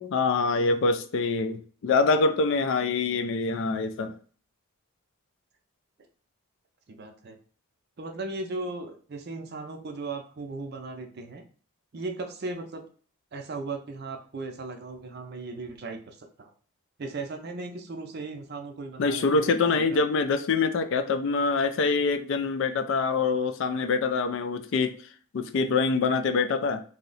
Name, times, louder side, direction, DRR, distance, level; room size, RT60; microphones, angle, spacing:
voice 1, 0.0-4.1 19.0-25.0 25.3-26.8, left 4 dB, 55° left, 9 dB, 0.3 m, -25 dB
voice 2, 6.9-7.4 8.0-11.4 11.9-12.9 13.3-16.5 17.0-20.0, right 3 dB, 45° right, 5 dB, 0.5 m, -37 dB
2.7 x 2.0 x 3.9 m, 0.42 s
head